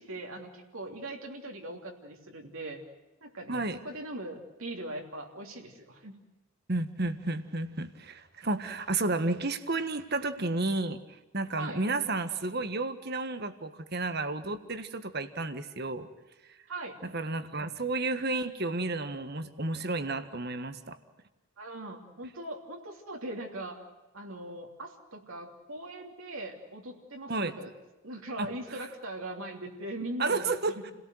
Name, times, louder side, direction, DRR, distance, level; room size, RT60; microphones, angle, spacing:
voice 1, 0.0-2.8 3.2-6.2 11.6-11.9 16.7-17.0 21.6-23.8 24.1-27.7 28.0-30.8, right 1 dB, 75° right, 1 dB, 3.1 m, -40 dB
voice 2, 6.7-16.1 17.0-21.0 27.3-27.5 28.4-28.5 30.2-30.9, right 2 dB, 45° right, 10 dB, 1.6 m, -32 dB
29.5 x 18.0 x 7.9 m, 1.1 s
head